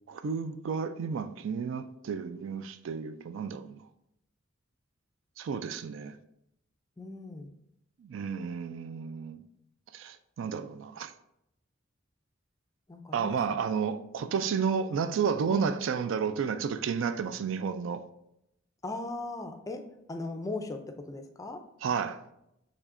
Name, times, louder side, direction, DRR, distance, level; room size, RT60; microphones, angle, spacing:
voice 1, 0.1-3.8 5.4-6.2 8.0-9.4 9.9-11.1 13.1-18.0 21.8-22.2, right 6 dB, 75° right, 0.3 m, -32 dB
voice 2, 7.0-7.5 12.9-13.5 15.5-15.7 18.8-21.7, left 2 dB, 15° left, 0.4 m, -38 dB
6.2 x 3.2 x 2.5 m
head